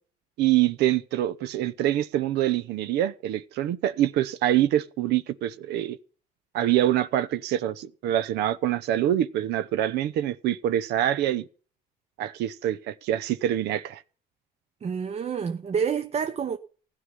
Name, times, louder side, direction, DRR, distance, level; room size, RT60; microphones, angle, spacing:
voice 1, 0.4-6.0 6.5-11.5 12.2-14.0, right 12 dB, 80° right, 0.9 m, -25 dB
voice 2, 14.8-16.6, right 7 dB, 40° right, 1.0 m, -28 dB
16.0 x 5.6 x 9.8 m
cardioid pair, 110°, 17 cm